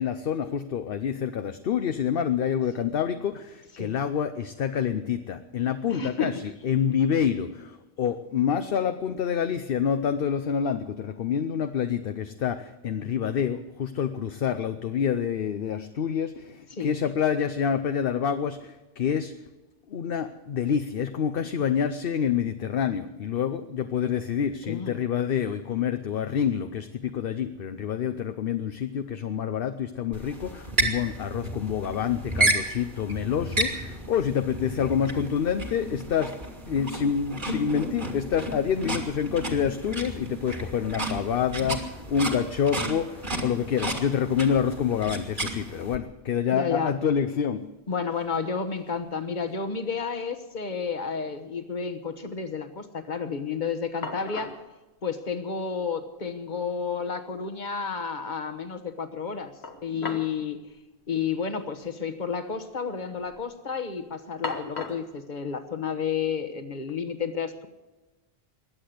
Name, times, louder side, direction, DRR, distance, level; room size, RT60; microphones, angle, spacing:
voice 1, 0.0-19.3 19.9-36.4 36.6-47.7, left 8 dB, 65° left, 9 dB, 0.9 m, -27 dB
voice 2, 5.9-6.5 16.8-16.9 24.6-24.9 46.5-46.9 47.9-54.6 55.0-59.5 59.8-60.6 61.1-67.7, left 6 dB, 50° left, 9 dB, 1.3 m, -31 dB
sound 1, 30.1-46.0, right 1 dB, 50° right, 2.2 m, -32 dB
sound 2, 47.6-47.7 47.9-48.5 48.8-49.7 50.0-50.1 53.5-53.6 54.0-54.7 55.8-55.9 56.3-56.4 59.6-60.4 60.7-60.8 61.7-61.9 62.2-62.7 63.1-63.5 64.4-65.1, left 3 dB, 85° left, 1.6 m, -38 dB
21.5 x 8.5 x 7.8 m, 1.1 s
omnidirectional pair, 1.1 m